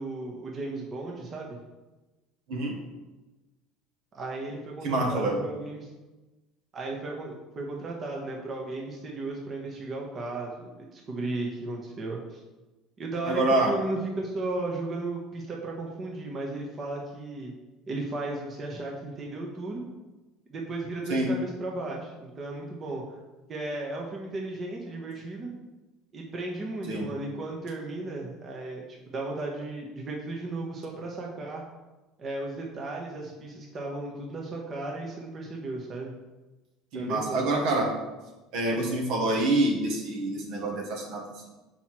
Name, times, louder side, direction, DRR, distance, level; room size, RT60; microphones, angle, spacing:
voice 1, 0.0-1.6 4.1-5.9 6.7-12.4 13.0-17.5 17.9-19.8 20.5-23.2 23.5-25.5 26.1-31.6 32.2-36.1 36.9-37.4, right 2 dB, 40° right, -1 dB, 1.3 m, -35 dB
voice 2, 4.8-5.4 13.3-13.7 21.1-21.3 26.9-27.1 36.9-37.9 38.5-41.5, right 2 dB, 70° right, 0 dB, 1.6 m, -26 dB
5.6 x 4.5 x 4.5 m, 1.1 s
supercardioid pair, 85°, 0 cm